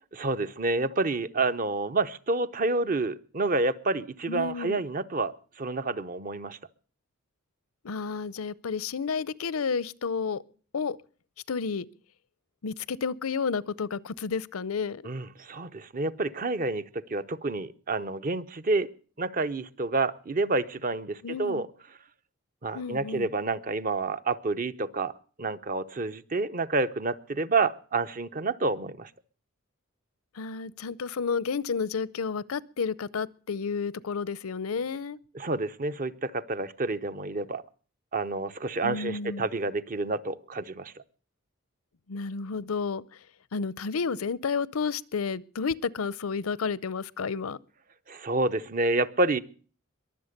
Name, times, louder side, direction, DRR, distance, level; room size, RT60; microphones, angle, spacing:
voice 1, 0.1-6.6 15.0-18.9 19.2-21.7 22.6-25.1 25.4-29.1 35.3-37.6 38.1-40.9 48.1-49.4, right 3 dB, 40° right, 0.7 m, -29 dB
voice 2, 4.3-4.8 7.8-10.4 10.7-11.0 11.5-11.9 12.6-15.1 21.2-21.6 22.7-23.3 30.3-35.2 38.8-39.5 42.1-43.0 43.5-47.6, left 5 dB, 85° left, 0.6 m, -31 dB
22.5 x 7.7 x 6.6 m
head